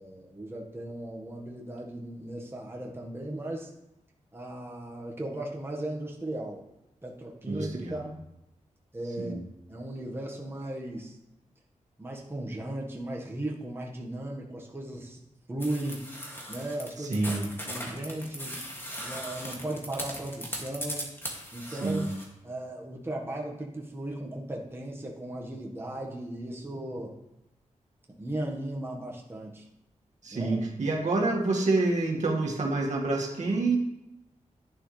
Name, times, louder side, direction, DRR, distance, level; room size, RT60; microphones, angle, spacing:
voice 1, 0.0-3.7 4.3-6.6 7.0-8.2 8.9-9.4 9.7-11.2 12.0-15.2 15.5-16.1 16.5-17.2 17.6-18.6 19.0-21.1 21.5-22.1 22.4-27.1 28.2-29.7 30.3-30.6, right 1 dB, 20° right, -2 dB, 1.5 m, -36 dB
voice 2, 7.5-8.0 9.2-9.4 17.0-17.4 21.7-22.1 30.2-33.8, right 3 dB, 65° right, -2 dB, 1.9 m, -27 dB
sound 1, 15.6-22.3, equal, 20° left, 2.3 m, -38 dB
11.0 x 9.8 x 3.3 m, 0.89 s
wide cardioid pair, 90°, 13 cm